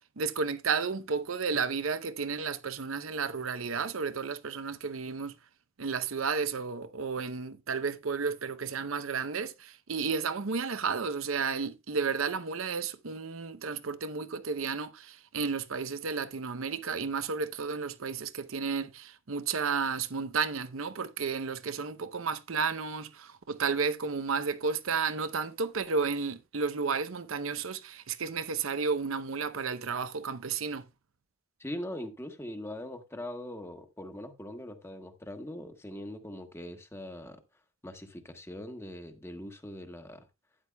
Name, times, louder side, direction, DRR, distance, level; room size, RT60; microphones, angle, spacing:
voice 1, 0.2-5.3 5.8-30.8, right 5 dB, 80° right, 0.8 m, -32 dB
voice 2, 31.6-37.4 37.8-40.2, left 1 dB, 15° left, 1.2 m, -41 dB
12.5 x 9.8 x 2.3 m
head